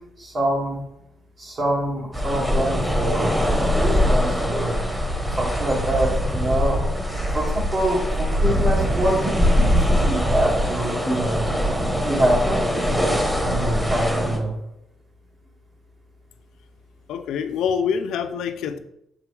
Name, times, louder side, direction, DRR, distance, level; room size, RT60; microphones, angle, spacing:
voice 1, 0.2-0.8 1.4-3.3 3.7-4.8 5.4-6.8 7.3-11.4 12.0-13.1 13.4-14.5, right 1 dB, 45° right, -3 dB, 2.3 m, -25 dB
sound 1, 2.1-14.4, equal, 5° right, 1.2 m, -22 dB
voice 2, 17.1-18.8, left 7 dB, 85° left, 10 dB, 0.4 m, -25 dB
5.9 x 4.7 x 3.4 m, 0.78 s
cardioid pair, 90°, 0 cm